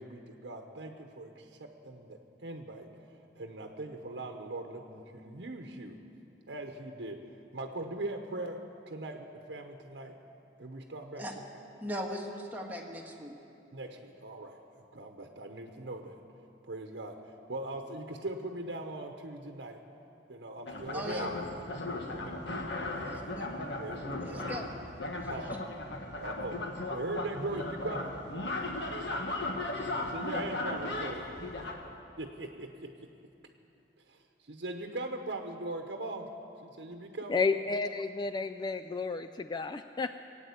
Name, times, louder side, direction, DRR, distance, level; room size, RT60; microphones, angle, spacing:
voice 1, 0.0-2.9 3.3-6.0 6.5-10.2 10.6-11.3 11.5-11.7 13.7-16.2 16.6-19.8 20.3-21.5 22.0-22.4 22.8-23.3 23.8-24.5 25.2-25.5 26.2-26.6 26.9-28.1 30.0-31.3 32.2-33.1 34.1-36.3 36.6-37.4, right 2 dB, 70° right, 3 dB, 0.9 m, -40 dB
voice 2, 11.8-13.3 20.9-21.3 23.1-23.6 24.2-24.7, equal, 10° right, 0 dB, 1.6 m, -39 dB
sound 1, 20.7-31.7, left 2 dB, 70° left, 1.5 m, -36 dB
voice 3, 37.3-40.2, left 4 dB, 25° left, 8 dB, 0.3 m, -32 dB
19.0 x 8.9 x 8.3 m, 2.7 s
head